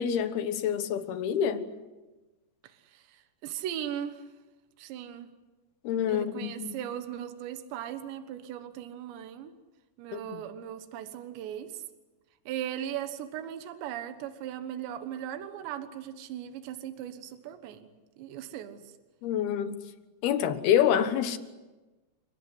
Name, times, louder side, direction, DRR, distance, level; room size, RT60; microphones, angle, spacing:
voice 1, 0.0-1.6 5.8-6.8 10.1-10.4 19.2-19.8 20.2-21.4, left 9 dB, 70° left, 3.1 m, -27 dB
voice 2, 2.6-4.2 4.8-5.3 6.1-9.5 10.0-11.8 12.5-18.9, right 10 dB, 85° right, 3.5 m, -38 dB
29.0 x 17.5 x 9.7 m
omnidirectional pair, 5.0 m